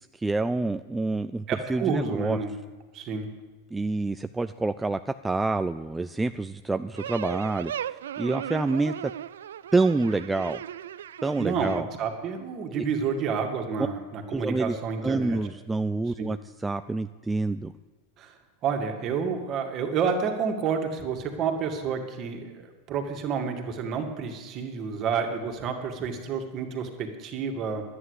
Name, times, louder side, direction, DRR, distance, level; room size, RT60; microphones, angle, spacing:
voice 1, 0.1-2.4 3.7-9.1 9.7-10.6 11.2-11.9 12.7-12.8 14.3-14.7 15.0-17.7, right 3 dB, 10° right, 10 dB, 0.4 m, -27 dB
voice 2, 1.5-2.5 2.9-3.3 11.4-15.4 16.2-16.3 18.2-18.3 18.6-27.8, right 6 dB, 40° right, 4 dB, 2.1 m, -29 dB
sound 1, 7.0-11.8, right 10 dB, 80° right, 0.3 m, -37 dB
11.0 x 9.5 x 8.1 m, 1.3 s
hypercardioid pair, 105°, 0 cm